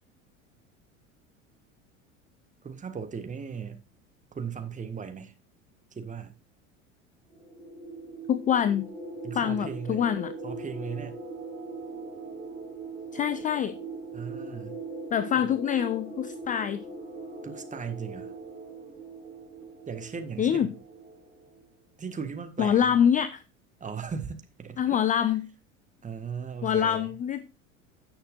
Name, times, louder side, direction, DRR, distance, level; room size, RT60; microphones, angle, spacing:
voice 1, 2.6-3.8 4.3-5.3 5.9-6.3 9.2-10.0 10.4-11.2 14.1-14.8 15.3-15.5 17.4-18.3 19.9-20.7 22.0-22.9 23.8-25.0 26.0-27.1, right 6 dB, 20° right, 1.6 m, -37 dB
sound 1, 7.3-21.6, right 3 dB, 85° right, 5.3 m, -41 dB
voice 2, 8.3-8.9 9.3-10.3 13.1-13.8 15.1-16.8 20.4-20.7 22.6-23.4 24.8-25.5 26.6-27.5, left 9 dB, 20° left, 0.5 m, -25 dB
16.5 x 6.5 x 2.5 m
figure-of-eight pair, 70°, 40 cm